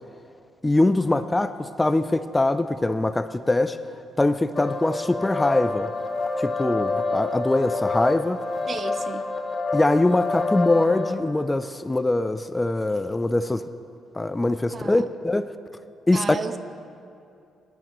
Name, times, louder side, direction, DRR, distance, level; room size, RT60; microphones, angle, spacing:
voice 1, 0.6-3.8 4.2-5.9 6.4-8.4 9.7-13.6 14.1-15.5 16.1-16.2, left 2 dB, 15° left, 12 dB, 0.4 m, -23 dB
sound 1, 4.6-11.1, left 3 dB, 30° left, 0.9 m, -28 dB
voice 2, 8.7-9.3 14.7-15.1 16.1-16.6, right 5 dB, 40° right, 10 dB, 0.6 m, -33 dB
18.0 x 11.0 x 3.0 m, 2.5 s
cardioid pair, 90°, 0 cm